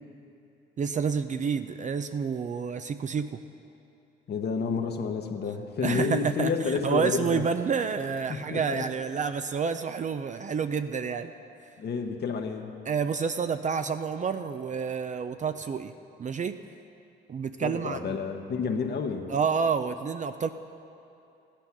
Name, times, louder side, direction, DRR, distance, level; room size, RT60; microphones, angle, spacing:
voice 1, 0.8-3.4 5.8-11.3 12.9-15.9 16.2-16.6 17.3-18.2 19.3-20.5, right 6 dB, 40° right, 9 dB, 0.5 m, -29 dB
voice 2, 4.3-7.4 8.3-8.8 11.8-12.7 17.6-19.3, left 5 dB, 55° left, 4 dB, 1.1 m, -30 dB
14.5 x 10.0 x 5.9 m, 2.7 s
cardioid pair, 90°, 20 cm